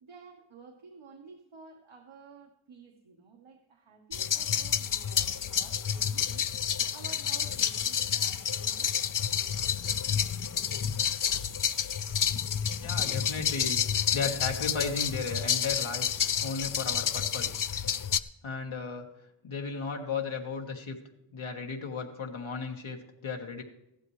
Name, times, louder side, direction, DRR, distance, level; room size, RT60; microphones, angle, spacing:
voice 1, 0.0-6.5 6.9-8.9, right 4 dB, 80° right, 2 dB, 1.3 m, -52 dB
sound 1, 4.1-18.2, left 8 dB, 45° left, 0.5 m, -29 dB
voice 2, 12.8-13.8 14.1-17.7 18.4-19.1 19.4-21.0 21.3-23.6, left 4 dB, 85° left, 2 dB, 1.6 m, -35 dB
15.0 x 11.5 x 3.2 m, 0.85 s
wide cardioid pair, 105°, 47 cm